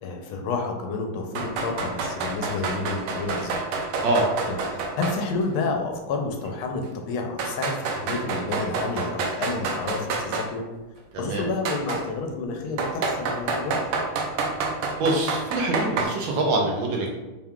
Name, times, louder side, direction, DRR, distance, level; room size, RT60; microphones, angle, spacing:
voice 1, 0.0-3.6 4.4-10.6 11.2-13.8, left 3 dB, 75° left, 3 dB, 1.4 m, -30 dB
sound 1, 1.3-5.2 5.5-5.6 6.4-6.5 7.4-10.5 11.6-12.0 12.8-16.0, right 4 dB, 90° right, 1.5 m, -28 dB
voice 2, 11.1-11.4 15.0-17.2, right 2 dB, 70° right, 0 dB, 1.2 m, -24 dB
4.5 x 2.3 x 3.6 m, 1.1 s
omnidirectional pair, 2.3 m